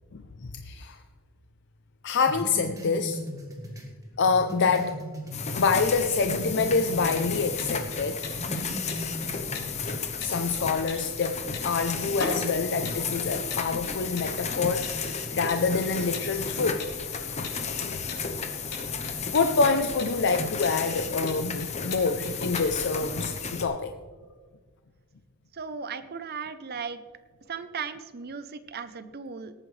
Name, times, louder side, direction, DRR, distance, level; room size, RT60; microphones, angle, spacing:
voice 1, 0.1-1.0 2.0-3.2 4.2-5.0 5.5-8.2 10.2-16.8 17.8-18.1 19.3-23.9, left 4 dB, 55° left, 6 dB, 0.6 m, -26 dB
sound 1, 2.3-6.0 6.3-7.9 8.2-9.9, equal, 15° right, 1.7 m, -38 dB
sound 2, 5.3-23.6, left 5 dB, 30° left, 0.9 m, -33 dB
sound 3, 7.6-22.7, left 3 dB, 90° left, 4.3 m, -41 dB
voice 2, 25.5-27.0 27.5-29.5, right 6 dB, 45° right, 11 dB, 0.7 m, -36 dB
19.0 x 9.0 x 3.3 m, 1.5 s
head